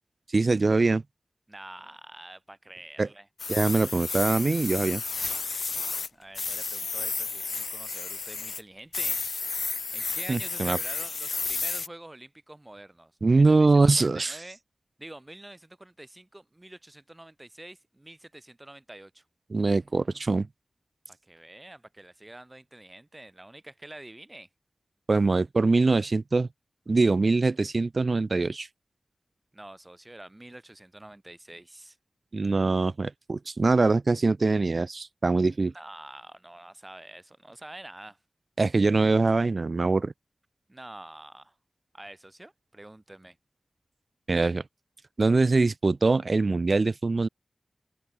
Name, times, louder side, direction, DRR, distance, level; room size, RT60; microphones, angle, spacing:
voice 1, 0.3-1.0 3.0-3.1 3.5-5.0 10.3-10.8 13.2-14.4 19.5-20.5 25.1-26.5 26.9-28.7 32.3-35.7 38.6-40.1 44.3-44.6 45.2-47.3, right 3 dB, 50° right, 0.7 m, -23 dB
voice 2, 1.5-3.3 6.1-9.2 9.9-13.7 14.0-14.6 15.0-19.2 21.1-24.5 29.5-32.0 35.7-38.2 40.7-41.5 41.9-43.4, right 1 dB, 20° right, 5.4 m, -46 dB
sound 1, 3.4-6.1 6.3-8.6 8.9-11.9, left 4 dB, 75° left, 0.3 m, -32 dB
open air
wide cardioid pair, 75°, 0 cm